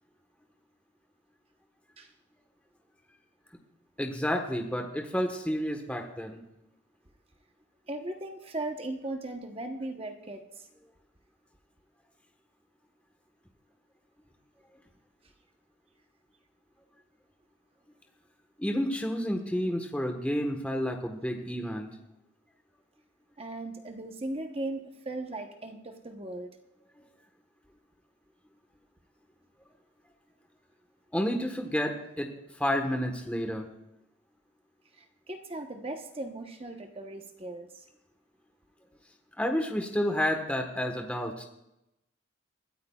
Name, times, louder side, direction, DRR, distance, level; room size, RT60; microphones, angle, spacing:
voice 1, 4.0-6.4 18.6-21.9 31.1-33.6 39.4-41.4, equal, 5° left, 3 dB, 1.3 m, -30 dB
voice 2, 7.9-10.7 23.4-26.6 34.9-37.8, right 2 dB, 30° right, 4 dB, 1.0 m, -38 dB
22.0 x 13.5 x 2.4 m, 0.89 s
head